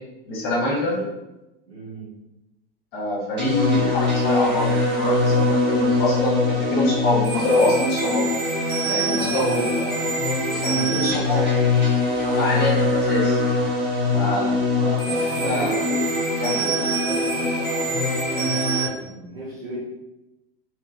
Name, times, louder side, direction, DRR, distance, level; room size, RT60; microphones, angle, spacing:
voice 1, 0.3-1.0 2.9-8.2 8.8-9.9 10.5-11.4 12.3-13.4 14.1-14.6 15.3-15.8 16.4-16.6, left 1 dB, 30° left, -3 dB, 0.7 m, -25 dB
voice 2, 1.7-2.2 9.1-10.2 10.6-11.2 14.7-16.2 16.5-19.8, right 1 dB, 75° right, -7 dB, 1.0 m, -36 dB
sound 1, 3.4-18.9, left 2 dB, 35° right, 0.9 m, -22 dB
2.7 x 2.3 x 2.6 m, 0.96 s
figure-of-eight pair, 90°, 31 cm